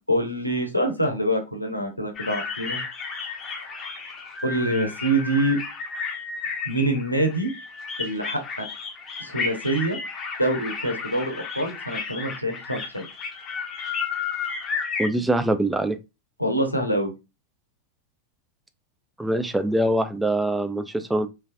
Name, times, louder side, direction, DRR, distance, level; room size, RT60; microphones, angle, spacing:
voice 1, 0.1-2.8 3.2-3.3 3.6-3.8 4.4-5.6 6.6-7.5 8.0-8.6 9.2-10.0 10.4-13.0 16.4-17.1, right 1 dB, 90° left, 0.8 m, -25 dB
sound 1, 2.2-15.1, left 5 dB, 25° left, 0.8 m, -33 dB
voice 2, 15.0-16.0 19.2-21.3, right 1 dB, 5° right, 0.4 m, -23 dB
3.2 x 3.2 x 2.3 m
figure-of-eight pair, 90°, 0 cm